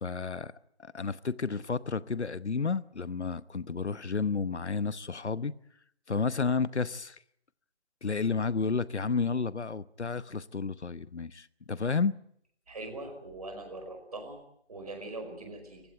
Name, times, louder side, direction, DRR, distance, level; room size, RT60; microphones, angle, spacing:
voice 1, 0.0-0.5 0.8-5.5 6.1-7.2 8.0-12.1, left 5 dB, 80° left, 1.0 m, -31 dB
voice 2, 12.7-14.4 14.7-15.8, right 2 dB, 35° right, 5.1 m, -41 dB
27.0 x 15.5 x 9.1 m
figure-of-eight pair, 175°, 34 cm